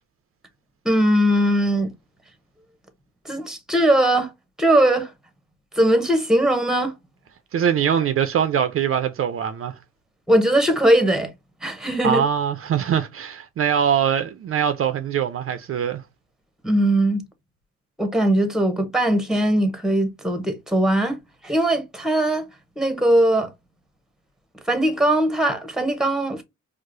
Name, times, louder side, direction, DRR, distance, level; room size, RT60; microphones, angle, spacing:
voice 1, 0.8-1.9 3.2-4.3 4.6-5.1 5.7-6.9 10.3-11.3 11.6-12.2 16.6-17.2 18.0-22.5 22.8-23.5 24.7-26.4, right 1 dB, ahead, 0.8 m, -20 dB
voice 2, 7.5-9.8 12.0-16.0, right 8 dB, 45° right, 0.5 m, -22 dB
4.7 x 2.0 x 2.5 m
cardioid pair, 90°, 30 cm